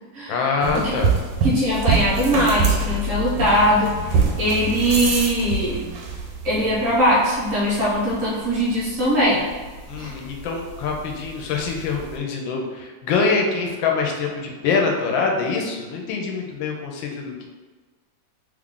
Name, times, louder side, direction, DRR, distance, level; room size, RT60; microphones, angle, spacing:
voice 1, 0.3-1.1 9.9-17.5, left 4 dB, 90° left, 1 dB, 1.4 m, -24 dB
sound 1, 0.6-12.2, right 3 dB, 90° right, 1.5 m, -26 dB
voice 2, 1.4-5.8 6.4-9.4 10.0-10.2, equal, 55° right, -8 dB, 1.0 m, -21 dB
3.3 x 2.4 x 3.7 m, 1.3 s
omnidirectional pair, 2.1 m